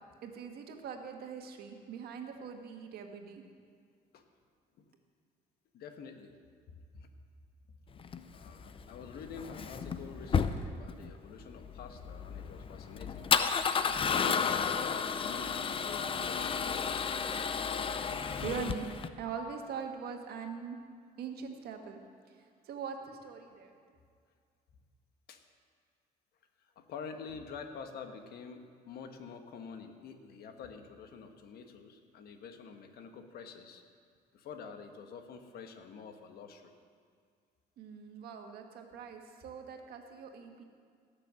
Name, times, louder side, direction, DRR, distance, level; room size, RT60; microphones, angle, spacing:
voice 1, 0.0-3.4 18.1-20.8 21.2-22.0 22.6-23.7 37.8-40.6, right 6 dB, 70° right, 4 dB, 1.6 m, -42 dB
voice 2, 5.7-6.3 6.7-7.1 8.3-13.3 14.0-17.2 25.3-25.4 26.7-33.8 34.3-36.7, left 5 dB, 65° left, 6 dB, 1.3 m, -47 dB
Male speech man speaking / Car / Engine starting, 8.0-19.1, left 6 dB, 30° left, 0.6 m, -33 dB
17.5 x 6.7 x 7.6 m, 2.1 s
cardioid pair, 110°, 17 cm